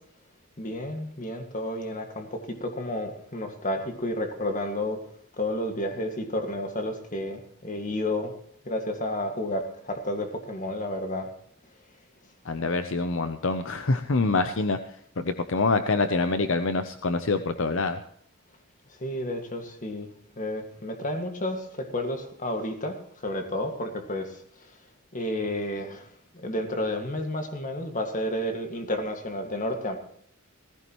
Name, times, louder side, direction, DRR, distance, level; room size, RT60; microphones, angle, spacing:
voice 1, 0.6-5.0 5.4-8.3 8.6-11.3 19.0-20.1 20.4-24.4 25.1-26.1 26.3-30.0, left 1 dB, 35° left, 5 dB, 1.9 m, -31 dB
voice 2, 12.4-14.8 15.2-18.0, left 3 dB, 65° left, 9 dB, 0.7 m, -25 dB
18.0 x 15.5 x 3.1 m, 0.67 s
head